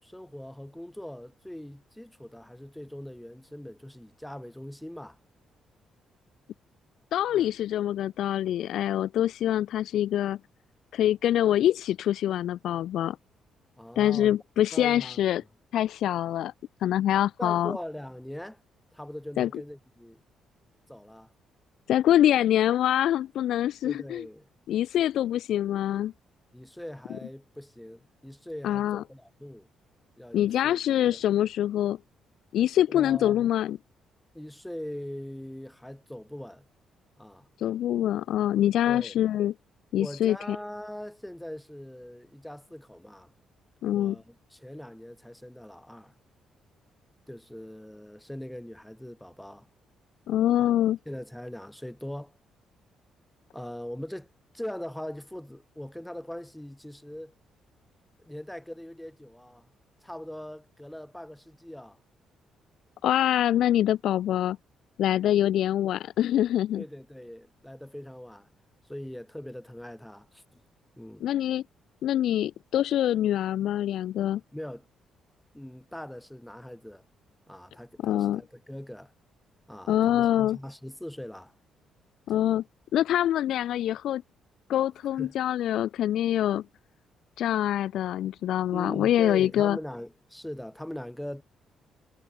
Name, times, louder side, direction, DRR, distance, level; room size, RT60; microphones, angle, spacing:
voice 1, 0.0-5.2 7.3-7.5 13.8-14.4 14.7-15.2 17.4-18.6 18.9-20.2 20.9-21.3 23.8-24.5 26.5-29.7 30.2-30.8 31.0-31.2 32.9-33.5 34.3-36.7 37.2-37.5 38.9-39.2 40.0-43.3 43.9-46.1 47.3-49.7 50.6-50.7 51.1-52.3 53.5-54.3 54.5-57.3 58.2-59.7 60.0-62.0 66.7-68.5 68.9-70.6 71.0-71.2 74.5-74.9 75.5-77.0 77.5-79.1 79.7-81.5 85.1-85.3 88.7-91.4, left 1 dB, 5° left, 6.3 m, -41 dB
voice 2, 7.1-10.4 10.9-13.2 14.0-15.4 15.7-16.5 16.8-17.8 19.4-19.5 21.9-24.2 24.7-26.1 28.6-29.0 30.3-32.0 32.5-33.8 37.6-39.5 39.9-40.6 43.8-44.2 50.3-51.0 63.0-64.6 65.0-66.8 71.2-71.6 72.0-74.4 78.0-78.4 79.9-80.6 82.3-82.6 82.9-84.2 84.7-86.6 87.4-89.8, left 12 dB, 75° left, 0.3 m, -25 dB
cardioid pair, 90°, 0 cm